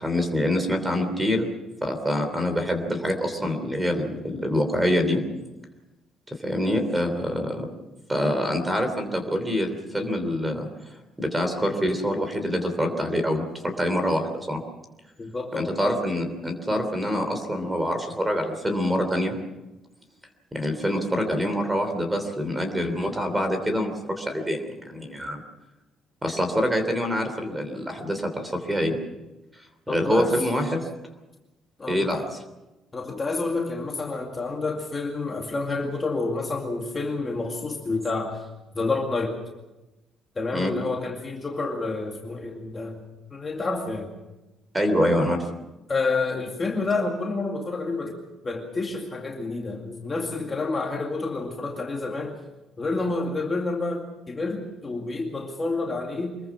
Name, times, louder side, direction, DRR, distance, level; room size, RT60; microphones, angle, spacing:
voice 1, 0.0-1.5 1.8-5.2 6.3-7.7 8.1-10.7 11.2-14.2 14.5-14.6 15.5-19.3 20.5-25.4 26.2-29.0 29.9-30.9 31.9-32.4 40.5-40.7 44.7-45.4, equal, 10° right, 7 dB, 3.1 m, -25 dB
voice 2, 15.2-15.7 29.9-30.4 31.8-32.2 32.9-38.5 38.7-39.4 40.4-43.0 43.3-44.1 45.9-48.2 48.4-52.4 52.8-56.4, left 3 dB, 20° left, 0 dB, 2.2 m, -29 dB
25.0 x 21.5 x 6.0 m, 1.0 s
cardioid pair, 180°, 0 cm